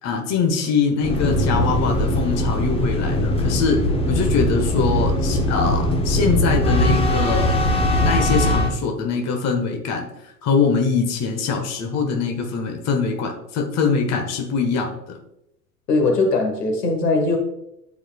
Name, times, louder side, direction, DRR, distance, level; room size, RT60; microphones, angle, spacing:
voice 1, 0.0-7.6 8.0-10.1 10.4-15.2, left 5 dB, 35° left, 3 dB, 1.4 m, -23 dB
sound 1, 1.0-8.7, left 1 dB, 10° left, 0.9 m, -20 dB
voice 2, 15.9-17.4, left 3 dB, 80° left, 3 dB, 1.8 m, -20 dB
12.5 x 5.0 x 2.4 m, 0.82 s
hypercardioid pair, 95°, 48 cm